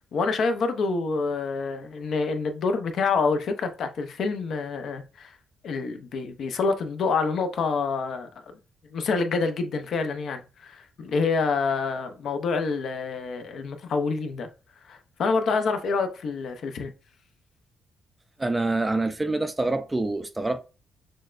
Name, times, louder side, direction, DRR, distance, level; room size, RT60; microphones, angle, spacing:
voice 1, 0.1-5.3 5.6-8.3 8.9-14.5 14.9-16.9, left 4 dB, 60° left, 0.6 m, -27 dB
voice 2, 18.4-20.6, right 2 dB, 15° right, 0.3 m, -26 dB
6.2 x 2.2 x 2.4 m
cardioid pair, 135°, 0 cm